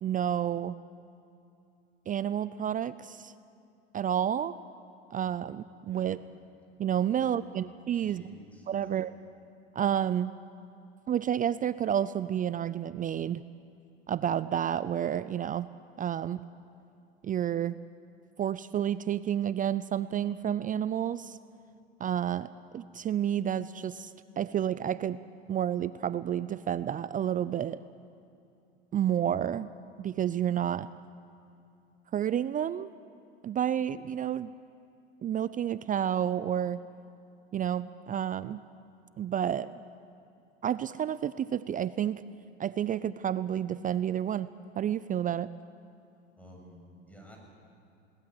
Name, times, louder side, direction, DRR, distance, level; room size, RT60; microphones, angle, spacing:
voice 1, 0.0-0.8 2.1-3.3 3.9-4.5 5.1-6.2 6.8-8.2 8.7-9.1 9.7-10.3 11.1-13.4 14.1-15.7 16.0-16.4 17.2-17.8 18.4-21.4 22.0-25.2 25.5-27.8 28.9-29.7 30.0-30.9 32.1-32.9 33.4-34.5 35.2-36.8 37.5-38.6 39.2-39.7 40.6-42.2 42.6-44.5 44.8-45.5, right 10 dB, 25° right, 16 dB, 0.5 m, -30 dB
voice 2, 7.9-9.0 46.4-47.4, equal, 5° left, 0 dB, 7.0 m, -52 dB
21.5 x 19.0 x 7.8 m, 2.7 s
hypercardioid pair, 90°, 31 cm